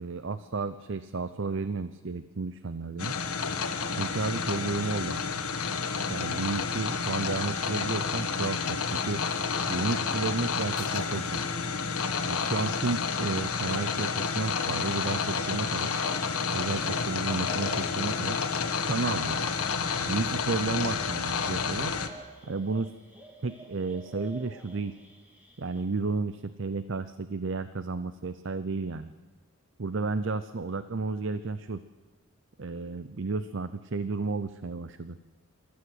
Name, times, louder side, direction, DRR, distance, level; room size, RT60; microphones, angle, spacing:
voice 1, 0.0-3.1 4.0-5.2 6.1-9.2 9.6-11.4 12.2-15.9 16.5-18.4 18.8-19.4 20.0-21.9 22.5-22.9 23.4-25.0 25.6-29.1 29.8-31.8 32.6-35.2, right 3 dB, 55° right, 13 dB, 0.6 m, -32 dB
sound 1, 3.0-22.1, left 5 dB, 85° left, 1.6 m, -30 dB
sound 2, 10.8-12.0, left 4 dB, 20° left, 5.3 m, -51 dB
sound 3, 14.7-25.8, right 2 dB, 5° right, 2.8 m, -51 dB
26.5 x 14.0 x 8.0 m, 1.4 s
head